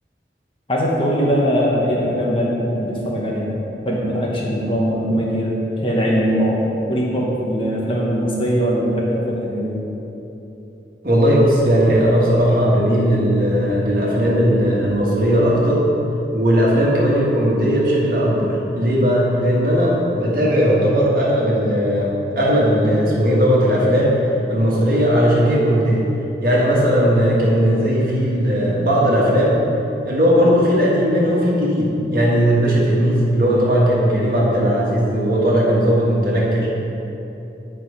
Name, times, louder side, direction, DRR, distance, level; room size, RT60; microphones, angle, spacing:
voice 1, 0.7-3.6 3.8-5.5 5.8-6.6 6.9-9.8, equal, 30° left, -3 dB, 1.0 m, -21 dB
voice 2, 11.0-15.9 16.3-24.2 24.5-26.1 26.4-29.6 30.0-36.7, equal, 50° right, -5 dB, 1.6 m, -17 dB
7.8 x 4.9 x 5.0 m, 3.0 s
head